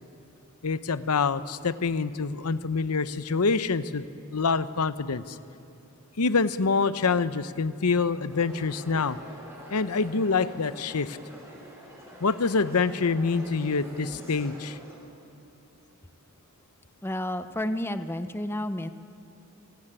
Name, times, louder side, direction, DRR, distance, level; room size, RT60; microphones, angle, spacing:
voice 1, 0.6-4.0 4.3-5.4 6.2-9.2 9.7-11.2 12.2-14.8, left 4 dB, 85° left, 13 dB, 0.8 m, -26 dB
sound 1, 8.3-15.0, equal, 10° right, 5.4 m, -46 dB
voice 2, 17.0-18.9, left 1 dB, 10° left, 10 dB, 0.7 m, -31 dB
27.5 x 16.5 x 9.0 m, 2.6 s
head